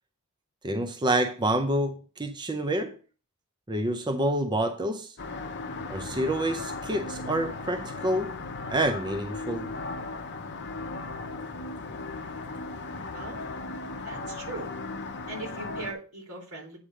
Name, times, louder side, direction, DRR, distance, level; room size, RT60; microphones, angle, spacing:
voice 1, 0.6-3.0 3.7-5.2 5.9-8.4 8.7-9.7, right 1 dB, 20° right, 0.5 m, -28 dB
sound 1, 5.2-15.9, left 3 dB, 55° left, 0.7 m, -37 dB
voice 2, 14.0-14.7 15.3-16.8, right 2 dB, 80° right, 3.0 m, -39 dB
8.6 x 3.3 x 6.3 m
head